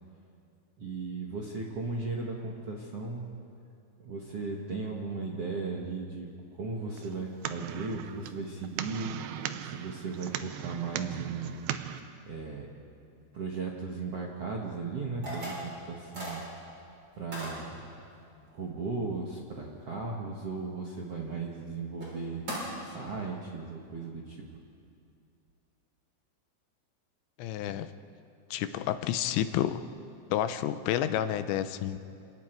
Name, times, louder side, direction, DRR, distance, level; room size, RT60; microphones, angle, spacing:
voice 1, 0.8-3.3 4.0-9.1 9.6-11.6 12.3-12.7 13.3-16.5 17.2-17.8 18.5-22.4 22.8-24.4, right 4 dB, 60° right, -2 dB, 1.6 m, -36 dB
sound 1, 7.0-12.0, right 10 dB, 80° right, 2.1 m, -38 dB
sound 2, 15.2-15.7 16.1-16.4 17.3-17.6 21.5-21.6 22.0-22.1 22.5-22.6, equal, 25° right, 7.4 m, -37 dB
voice 2, 27.4-27.9 28.5-29.8 30.3-32.0, left 11 dB, 80° left, 10 dB, 3.0 m, -30 dB
28.0 x 26.5 x 4.6 m, 2.5 s
omnidirectional pair, 5.2 m